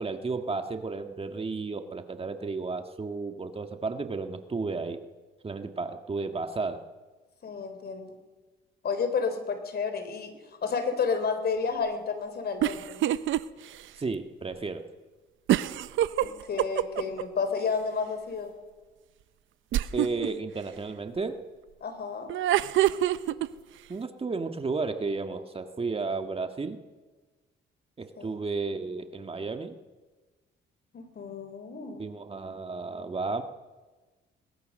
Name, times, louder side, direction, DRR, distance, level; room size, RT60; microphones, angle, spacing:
voice 1, 0.0-5.0 5.4-6.8 14.0-14.9 19.9-21.4 23.9-26.8 28.0-29.7 32.0-33.4, right 4 dB, 30° right, 7 dB, 1.6 m, -33 dB
voice 2, 7.4-8.2 8.8-10.3 10.6-13.0 16.2-18.5 21.8-22.3 28.2-28.4 30.9-32.1, left 5 dB, 55° left, 9 dB, 3.9 m, -31 dB
sound 1, 12.6-13.4 13.8-13.9 15.5-17.2 19.7-20.3 22.3-23.5, right 13 dB, 80° right, 0.8 m, -25 dB
22.0 x 20.5 x 6.5 m, 1.3 s
cardioid pair, 90°, 20 cm